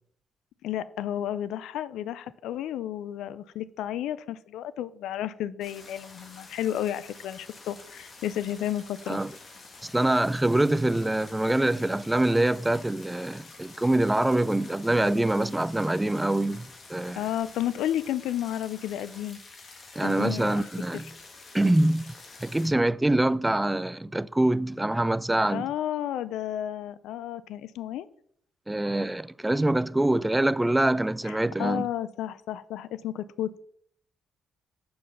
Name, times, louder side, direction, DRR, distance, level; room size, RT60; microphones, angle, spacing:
voice 1, 0.6-9.2 17.2-19.4 20.0-20.6 20.9-21.0 25.5-28.1 31.2-33.6, left 11 dB, 85° left, 0.4 m, -32 dB
sound 1, 5.6-22.7, left 3 dB, 45° left, 1.6 m, -48 dB
voice 2, 9.8-17.2 20.0-21.1 21.5-22.0 22.4-25.7 28.7-31.9, right 1 dB, 10° right, 0.3 m, -25 dB
5.8 x 5.2 x 5.7 m
cardioid pair, 90°, 0 cm